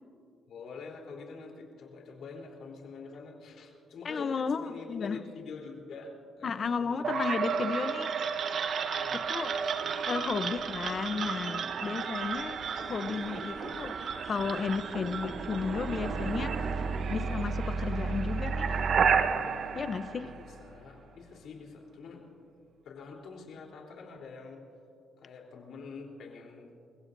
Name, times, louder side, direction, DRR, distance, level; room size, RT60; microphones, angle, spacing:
voice 1, 0.5-7.8 8.9-9.2 20.2-22.2 22.8-24.6 25.2-26.7, left 4 dB, 70° left, 0 dB, 3.6 m, -46 dB
voice 2, 4.0-5.2 6.4-8.1 9.1-9.5 10.1-14.0 14.2-16.8 17.1-18.7 19.7-20.3, left 5 dB, 45° left, 11 dB, 0.8 m, -33 dB
sound 1, 7.0-20.9, right 6 dB, 60° right, 0.9 m, -32 dB
30.0 x 16.5 x 2.7 m, 2.5 s
cardioid pair, 90°, 0 cm